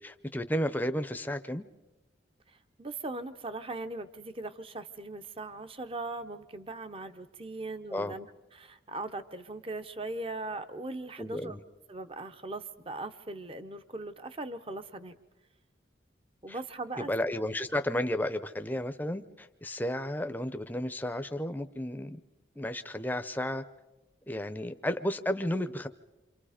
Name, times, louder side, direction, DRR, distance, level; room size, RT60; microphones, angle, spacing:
voice 1, 0.0-1.6 7.9-8.1 11.2-11.6 16.5-16.6 17.0-22.2 22.6-23.6 24.3-25.9, left 1 dB, 10° left, 9 dB, 0.7 m, -33 dB
voice 2, 2.5-8.3 8.5-11.6 11.9-15.2 16.4-17.1, right 2 dB, 30° right, 10 dB, 0.8 m, -39 dB
28.5 x 26.0 x 5.0 m, 1.0 s
head